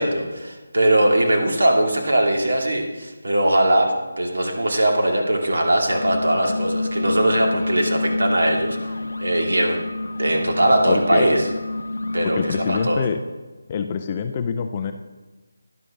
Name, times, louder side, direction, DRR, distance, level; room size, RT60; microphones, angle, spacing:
voice 1, 0.0-8.8 9.2-9.8 10.2-11.5 12.1-13.1, right 1 dB, 65° right, 1 dB, 2.4 m, -20 dB
sound 1, 5.8-13.0, left 2 dB, 80° left, 0.7 m, -28 dB
voice 2, 10.9-11.3 12.3-13.2 13.7-14.9, left 6 dB, 15° left, 6 dB, 0.3 m, -25 dB
12.0 x 11.0 x 3.7 m, 1.2 s
figure-of-eight pair, 180°, 0 cm